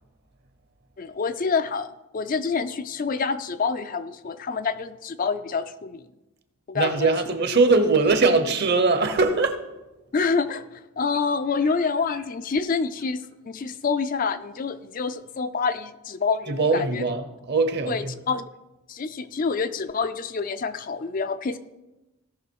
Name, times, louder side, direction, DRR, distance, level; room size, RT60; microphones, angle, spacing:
voice 1, 1.0-1.9 2.1-6.0 6.7-7.4 10.1-17.1 17.9-18.4 18.9-21.6, left 5 dB, 40° left, 0.4 m, -27 dB
voice 2, 6.7-9.6 16.5-18.1, right 3 dB, 50° right, 1.0 m, -21 dB
17.0 x 6.0 x 4.6 m
head